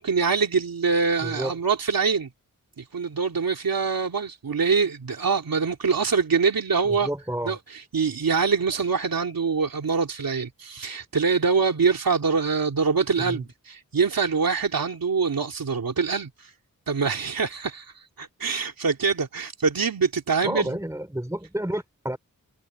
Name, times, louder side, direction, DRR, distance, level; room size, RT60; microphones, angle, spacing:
voice 1, 0.0-2.3 2.8-7.1 7.4-16.5 16.9-20.8, right 5 dB, 85° right, 2.7 m, -24 dB
voice 2, 1.2-1.5 6.9-7.5 13.2-13.4 20.4-22.2, right 1 dB, 10° right, 5.1 m, -30 dB
wide cardioid pair, 100°, 34 cm